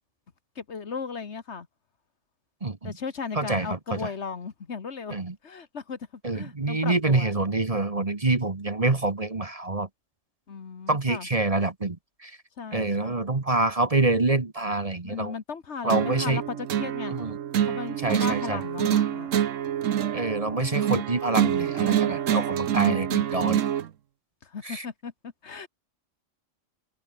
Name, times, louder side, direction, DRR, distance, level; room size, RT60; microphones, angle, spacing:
voice 1, 0.6-1.7 2.8-5.1 5.4-6.0 6.3-7.3 10.5-11.3 12.6-13.1 15.0-17.2 17.6-19.3 24.4-25.7, left 5 dB, 60° left, 1.7 m, -36 dB
voice 2, 2.6-2.9 3.3-4.1 5.1-5.3 6.2-9.9 10.9-12.0 12.2-12.4 12.7-15.3 15.8-16.4 17.1-17.4 18.0-18.6 20.1-23.6 24.6-24.9, right 2 dB, 30° right, 1.4 m, -26 dB
sound 1, 15.9-23.9, right 10 dB, 80° right, 1.2 m, -26 dB
omnidirectional pair, 1.3 m